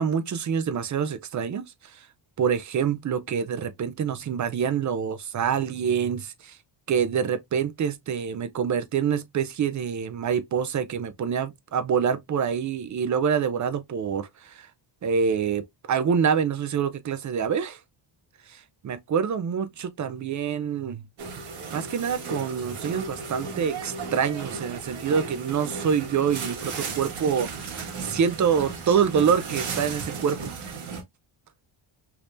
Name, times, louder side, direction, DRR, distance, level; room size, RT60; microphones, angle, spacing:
voice 1, 0.0-1.6 1.9-2.0 2.4-6.6 6.9-14.7 15.0-15.6 15.9-17.8 18.5-21.0 21.7-27.5 28.0-30.6, right 7 dB, 40° right, 0.6 m, -26 dB
sound 1, 21.2-31.0, right 4 dB, 65° right, 1.4 m, -35 dB
3.5 x 2.9 x 2.5 m
cardioid pair, 115°, 48 cm